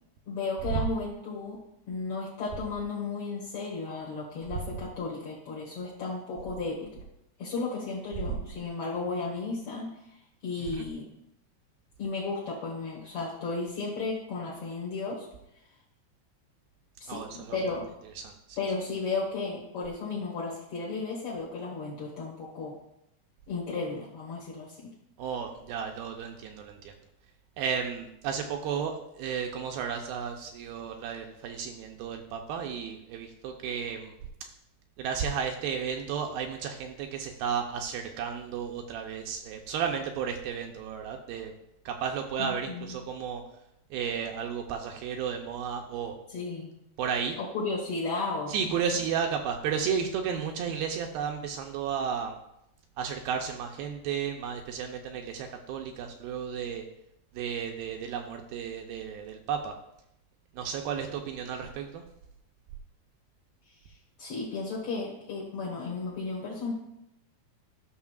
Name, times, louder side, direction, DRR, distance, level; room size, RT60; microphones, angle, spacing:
voice 1, 0.3-1.6 1.9-7.0 7.4-9.9 10.4-11.1 12.0-15.3 17.0-17.9 18.6-22.7 23.5-24.9 42.4-42.9 46.3-46.7 47.4-48.8 64.2-66.7, left 3 dB, 60° left, -5 dB, 1.4 m, -34 dB
voice 2, 17.1-17.6 18.2-18.6 25.2-26.9 27.6-34.2 35.0-41.5 41.9-43.4 43.9-46.2 47.0-47.4 48.5-52.4 53.0-56.8 57.3-59.7 60.6-62.0, right 7 dB, 80° right, 3 dB, 2.3 m, -33 dB
13.0 x 6.1 x 2.4 m, 0.80 s
omnidirectional pair, 4.7 m